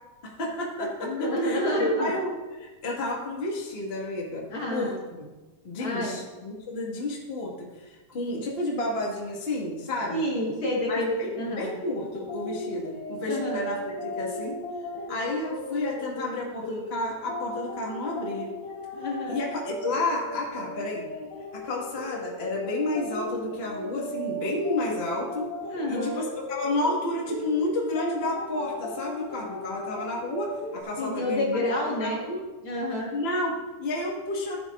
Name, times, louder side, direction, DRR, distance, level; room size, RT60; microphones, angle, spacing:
voice 1, 0.2-1.1 1.4-5.3 5.6-10.2 10.9-14.6 15.1-18.5 19.3-21.1 21.5-25.5 25.9-31.7 32.0-32.4 33.1-34.5, left 2 dB, 25° left, -4 dB, 1.4 m, -31 dB
voice 2, 1.0-2.1 4.5-5.0 5.8-6.2 10.1-11.7 13.3-13.6 18.9-19.4 25.7-26.1 31.0-32.2 32.6-33.1, left 1 dB, 45° left, -3 dB, 2.1 m, -28 dB
sound 1, 11.8-30.8, left 1 dB, 70° left, 3.1 m, -37 dB
15.5 x 7.9 x 2.5 m, 1.2 s
omnidirectional pair, 3.6 m